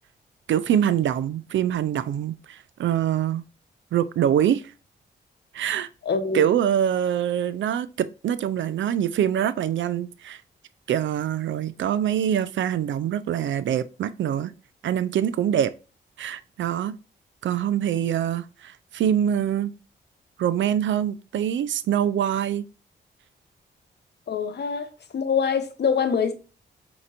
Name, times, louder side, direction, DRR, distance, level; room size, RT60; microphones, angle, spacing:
voice 1, 0.5-3.4 3.9-4.7 5.5-5.9 6.3-10.4 10.9-14.5 14.8-15.7 16.2-17.0 17.4-19.7 20.4-22.6, right 10 dB, 70° right, 0.4 m, -24 dB
voice 2, 6.0-6.5 24.3-26.3, left 6 dB, 60° left, 0.9 m, -25 dB
5.1 x 2.9 x 2.5 m
supercardioid pair, 50°, 20 cm